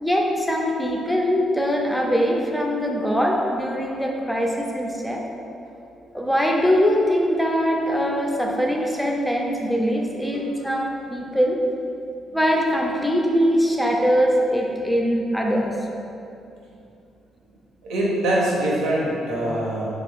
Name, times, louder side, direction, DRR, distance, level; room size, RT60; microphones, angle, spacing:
voice 1, 0.0-5.2 6.1-11.6 12.3-15.7, equal, ahead, -1 dB, 0.4 m, -22 dB
voice 2, 17.8-19.9, right 1 dB, 85° right, -5 dB, 0.8 m, -24 dB
3.4 x 2.3 x 3.5 m, 2.6 s
cardioid pair, 90°, 0 cm